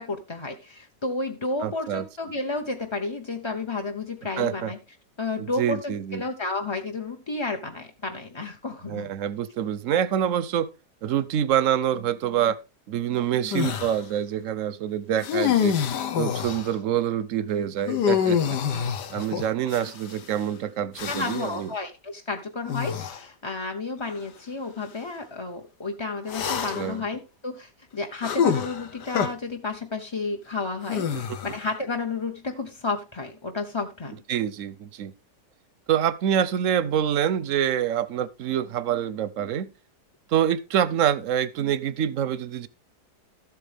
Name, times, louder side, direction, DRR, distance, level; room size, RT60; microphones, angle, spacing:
voice 1, 0.0-4.8 5.2-9.1 21.0-34.2, left 3 dB, 30° left, 0.5 m, -32 dB
voice 2, 1.6-2.1 4.4-4.7 5.4-6.2 8.9-10.7 11.0-12.6 12.9-15.7 16.2-21.7 26.7-27.1 31.1-31.2 34.3-35.1 35.9-39.7 40.3-42.7, right 10 dB, 65° right, 0.9 m, -26 dB
sound 1, 13.5-14.0 15.2-16.7 17.9-20.2 21.0-21.6 22.7-23.2 24.0-24.2 26.3-27.0 28.2-29.3 30.8-31.7, left 8 dB, 80° left, 1.6 m, -26 dB
13.0 x 7.9 x 3.4 m
omnidirectional pair, 1.8 m